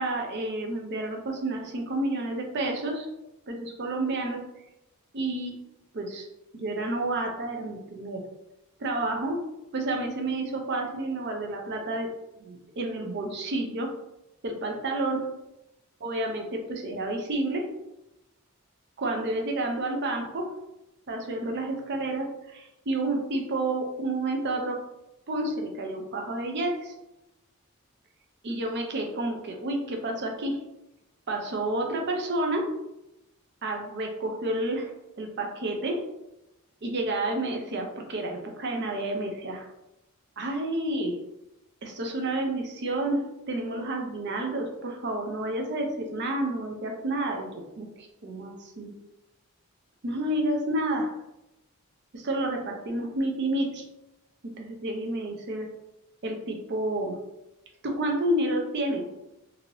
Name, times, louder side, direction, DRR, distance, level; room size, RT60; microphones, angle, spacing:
voice 1, 0.0-3.1 3.5-4.4 5.1-5.5 5.9-6.3 6.5-8.2 8.8-9.4 9.7-12.1 12.4-13.9 14.4-15.3 16.0-17.7 19.0-20.5 21.1-24.8 25.3-26.9 28.4-30.6 31.3-32.7 33.6-34.9 35.2-36.0 36.8-39.7 40.4-41.2 41.8-43.2 43.5-47.5 47.8-48.9 50.0-51.1 52.1-53.8 54.6-55.7 56.2-57.2 57.8-59.0, right 1 dB, 50° right, 2 dB, 0.5 m, -30 dB
2.8 x 2.6 x 3.0 m, 0.91 s
head